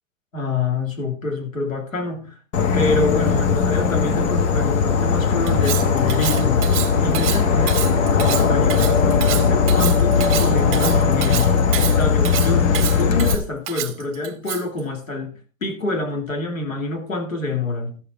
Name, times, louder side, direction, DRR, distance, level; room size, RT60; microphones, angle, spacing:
voice 1, 0.3-2.4 2.7-6.7 7.0-18.0, left 3 dB, 90° left, 2.5 m, -27 dB
Insect / Frog, 2.5-13.4, left 6 dB, 60° left, 1.4 m, -18 dB
Cutlery silverware, 5.5-14.8, right 13 dB, 30° right, 1.1 m, -28 dB
13.5 x 6.8 x 4.1 m
figure-of-eight pair, 100°, 39 cm